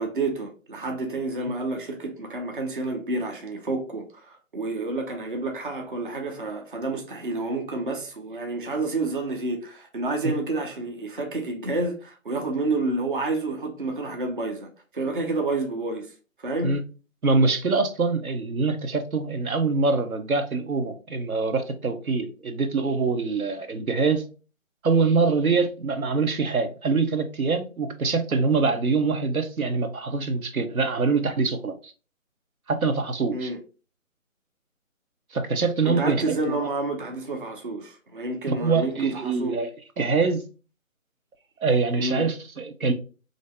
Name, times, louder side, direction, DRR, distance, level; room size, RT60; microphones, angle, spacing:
voice 1, 0.0-16.1 16.4-16.7 33.3-33.6 35.8-39.6 42.0-42.3, right 2 dB, 40° right, 0.5 m, -29 dB
voice 2, 17.2-24.3 24.8-31.9 32.7-33.5 35.3-36.6 38.5-39.7 40.0-40.4 41.6-42.9, right 4 dB, 90° right, 0.8 m, -24 dB
3.2 x 2.7 x 3.2 m
figure-of-eight pair, 160°, 42 cm